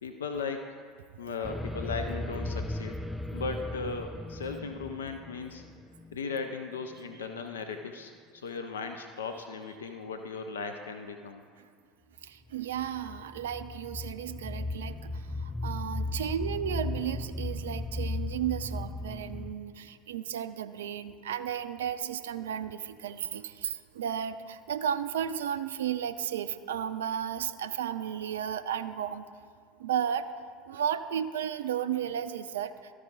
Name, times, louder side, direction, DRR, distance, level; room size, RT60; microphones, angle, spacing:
voice 1, 0.0-0.8 1.2-3.0 3.3-5.6 6.1-11.4, left 4 dB, 80° left, 6 dB, 0.4 m, -37 dB
sound 1, 1.4-6.4 12.5-19.5, left 2 dB, 5° left, 0.4 m, -36 dB
voice 2, 12.2-29.3 29.8-30.3 30.7-32.9, right 9 dB, 75° right, 11 dB, 0.3 m, -34 dB
13.5 x 4.7 x 3.9 m, 2.1 s
figure-of-eight pair, 70°, 0 cm